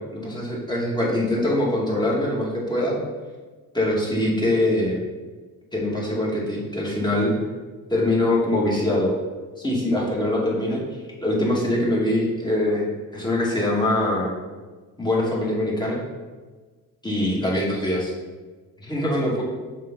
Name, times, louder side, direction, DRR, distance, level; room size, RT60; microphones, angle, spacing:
voice 1, 0.1-3.0 3.7-5.0 5.7-7.3 7.9-9.1 9.6-10.8 11.2-12.9 13.1-14.3 15.0-16.0 17.0-18.1 18.8-19.4, left 1 dB, 10° left, -5 dB, 2.3 m, -23 dB
7.4 x 5.3 x 4.0 m, 1.4 s
cardioid pair, 95°, 35 cm